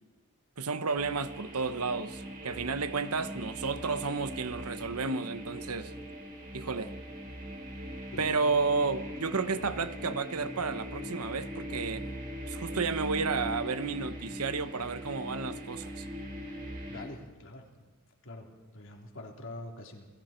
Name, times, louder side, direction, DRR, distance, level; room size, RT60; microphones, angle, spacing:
voice 1, 0.6-5.9 6.5-7.0 8.2-12.1 12.5-16.0, right 4 dB, 80° right, 1.1 m, -32 dB
sound 1, 1.0-17.0, equal, 40° right, 5.4 m, -41 dB
voice 2, 16.9-17.9 18.2-20.1, left 1 dB, 60° left, 3.6 m, -45 dB
30.0 x 20.0 x 4.5 m
head